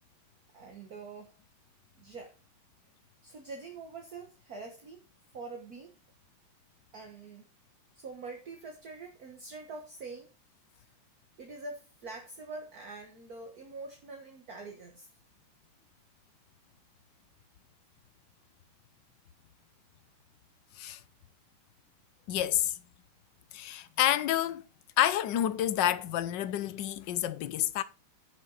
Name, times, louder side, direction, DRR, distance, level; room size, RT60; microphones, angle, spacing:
voice 1, 0.5-1.3 2.0-2.4 3.2-5.0 5.3-6.0 6.9-7.5 8.0-10.3 10.8-11.0 11.4-15.1, right 3 dB, 50° right, 1.8 m, -45 dB
voice 2, 22.3-22.8 23.5-24.6 25.0-27.8, left 12 dB, 70° left, 1.3 m, -29 dB
10.5 x 7.0 x 4.0 m
omnidirectional pair, 2.3 m